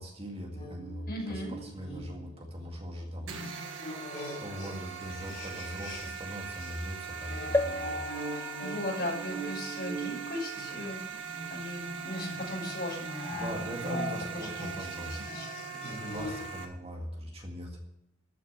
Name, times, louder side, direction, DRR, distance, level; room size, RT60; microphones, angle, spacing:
voice 1, 0.0-3.3 3.7-3.9 4.4-8.1 8.3-8.5 13.3-15.2 15.8-17.8, equal, 30° right, 2 dB, 2.0 m, -40 dB
sound 1, 0.5-6.3 6.6-16.5, equal, 35° left, 5.8 m, -41 dB
voice 2, 1.1-1.5 8.3-11.0 11.5-13.8 14.3-15.5, left 1 dB, 50° left, -2 dB, 5.9 m, -38 dB
sound 2, 3.3-16.7, right 6 dB, 75° right, 1.6 m, -41 dB
sound 3, 7.5-11.2 11.8-11.9 12.1-12.2, left 2 dB, 15° left, 0.6 m, -36 dB
14.0 x 6.5 x 8.2 m, 0.84 s
head